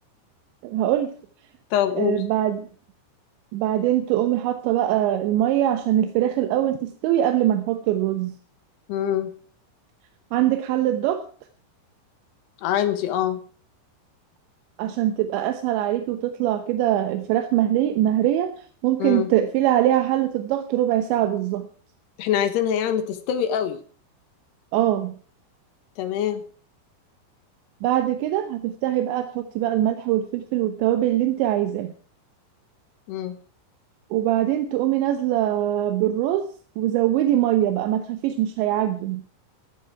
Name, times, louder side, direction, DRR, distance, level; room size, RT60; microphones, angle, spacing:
voice 1, 0.6-1.1 2.0-2.7 3.5-8.3 10.3-11.2 14.8-21.7 24.7-25.1 27.8-31.9 34.1-36.5 36.8-39.2, right 12 dB, 75° right, 8 dB, 3.0 m, -22 dB
voice 2, 1.7-2.3 8.9-9.3 12.6-13.4 19.0-19.3 22.2-23.8 26.0-26.4 33.1-33.4, left 10 dB, 70° left, 9 dB, 2.8 m, -24 dB
14.5 x 12.5 x 4.7 m, 0.43 s
omnidirectional pair, 5.9 m